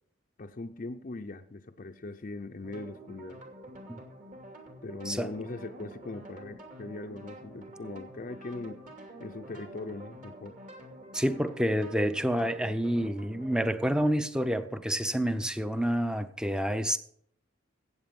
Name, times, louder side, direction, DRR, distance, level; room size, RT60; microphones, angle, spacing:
voice 1, 0.4-3.4 4.8-8.8 9.2-10.6, left 2 dB, 40° left, 0.5 m, -40 dB
sound 1, 2.6-13.7, right 1 dB, 40° right, 2.8 m, -47 dB
voice 2, 11.1-17.0, equal, 5° right, 0.7 m, -28 dB
15.0 x 8.7 x 5.3 m
head